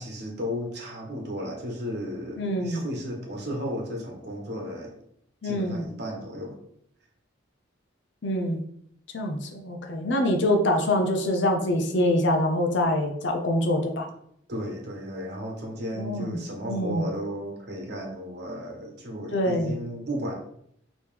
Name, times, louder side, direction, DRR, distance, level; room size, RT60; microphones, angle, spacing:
voice 1, 0.0-4.9 5.4-6.6 14.5-20.3, equal, 55° right, 1 dB, 1.2 m, -34 dB
voice 2, 2.4-2.8 5.4-5.8 8.2-8.6 9.1-14.1 16.0-16.4 16.7-17.0 19.3-19.8, left 1 dB, 65° left, 3 dB, 0.6 m, -25 dB
5.2 x 3.1 x 3.3 m, 0.69 s
head